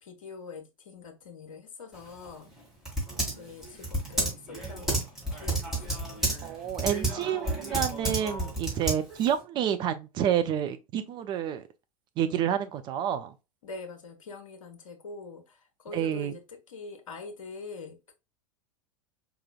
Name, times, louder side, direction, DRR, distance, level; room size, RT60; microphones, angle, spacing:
voice 1, 0.0-2.5 3.3-5.0 5.3-6.3 13.6-18.1, left 4 dB, 60° left, 1.1 m, -44 dB
Typing, 1.9-9.4, right 1 dB, ahead, 2.0 m, -32 dB
voice 2, 6.4-11.6 12.2-13.3 15.9-16.3, right 9 dB, 25° right, 0.3 m, -29 dB
4.7 x 2.9 x 2.2 m
figure-of-eight pair, 90°, 19 cm